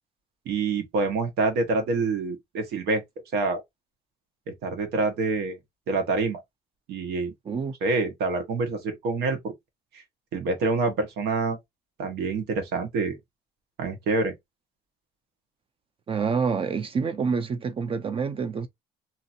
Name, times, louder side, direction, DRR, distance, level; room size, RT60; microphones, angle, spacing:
voice 1, 0.4-3.0 3.3-3.6 4.6-5.6 5.9-6.4 6.9-7.3 7.8-9.5 9.9-10.0 10.3-11.6 12.0-13.2 13.8-14.3, right 3 dB, 80° right, 1.3 m, -26 dB
voice 2, 16.1-18.7, right 5 dB, 35° right, 0.5 m, -27 dB
2.9 x 2.6 x 2.6 m
cardioid pair, 110°, 17 cm